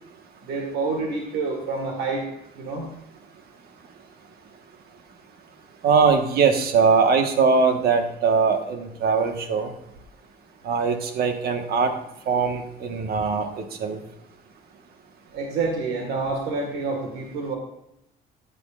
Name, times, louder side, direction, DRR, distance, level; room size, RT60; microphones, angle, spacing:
voice 1, 0.4-2.2 2.6-2.9 15.3-17.6, right 3 dB, 85° right, 2 dB, 1.7 m, -28 dB
voice 2, 5.8-9.7 10.6-11.9 12.3-14.0, right 5 dB, 65° right, 6 dB, 1.4 m, -21 dB
14.0 x 9.8 x 2.5 m, 0.82 s
cardioid pair, 110°, 17 cm